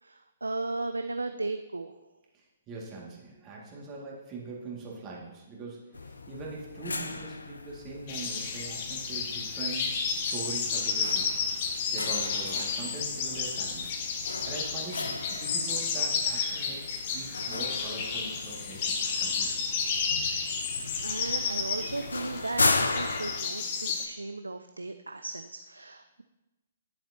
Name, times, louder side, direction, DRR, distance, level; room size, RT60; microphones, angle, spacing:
voice 1, 0.0-1.9 21.0-26.2, right 3 dB, 80° right, 9 dB, 0.4 m, -36 dB
voice 2, 2.3-11.4 11.7-13.9 14.5-19.6, right 3 dB, 25° right, -3 dB, 2.2 m, -42 dB
sound 1, 5.9-23.4, left 3 dB, 75° left, 0.6 m, -36 dB
sound 2, 8.1-24.1, left 5 dB, 40° left, 1.0 m, -32 dB
11.0 x 7.2 x 2.9 m, 1.0 s
figure-of-eight pair, 125°, 0 cm